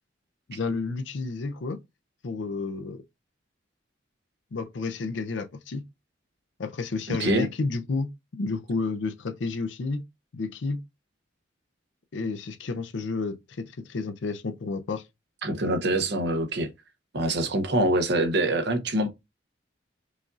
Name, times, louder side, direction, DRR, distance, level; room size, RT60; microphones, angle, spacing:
voice 1, 0.5-1.8 2.2-3.0 4.5-5.8 6.6-10.0 10.3-10.8 12.1-15.0, left 3 dB, 75° left, 0.5 m, -31 dB
voice 2, 7.1-7.5 15.4-16.7 17.1-19.1, right 1 dB, 60° right, 0.8 m, -25 dB
5.0 x 2.6 x 2.4 m
head